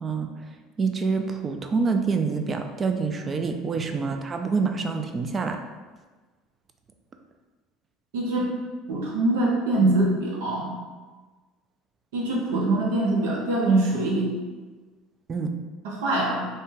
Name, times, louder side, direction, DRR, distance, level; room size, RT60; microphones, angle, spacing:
voice 1, 0.8-5.6 15.3-15.5, right 4 dB, 35° right, 5 dB, 0.3 m, -26 dB
voice 2, 8.1-8.5 8.9-10.7 12.1-14.3 15.8-16.5, right 2 dB, 75° right, -3 dB, 0.7 m, -23 dB
2.6 x 2.1 x 3.6 m, 1.3 s
hypercardioid pair, 70°, 0 cm